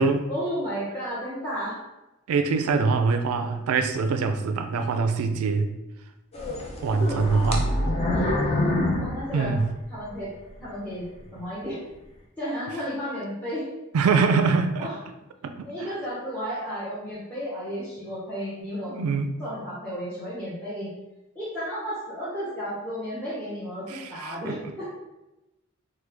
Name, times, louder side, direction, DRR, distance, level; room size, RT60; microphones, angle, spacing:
voice 1, 0.3-1.8 6.9-7.5 8.1-8.4 9.0-9.6 9.9-10.3 10.6-11.8 12.4-13.7 14.8-15.0 15.6-19.0 19.4-20.9 21.3-24.9, equal, 10° left, -11 dB, 0.8 m, -33 dB
voice 2, 2.3-5.7 6.8-7.7 9.3-9.7 13.9-14.7 15.4-15.5 15.8-15.9 18.9-19.3 23.9-24.3, right 4 dB, 75° right, 8 dB, 0.3 m, -23 dB
sound 1, 6.3-10.1 10.6-10.7 11.3-11.4, left 1 dB, 30° left, 0.5 m, -26 dB
3.0 x 2.2 x 3.3 m, 0.99 s
head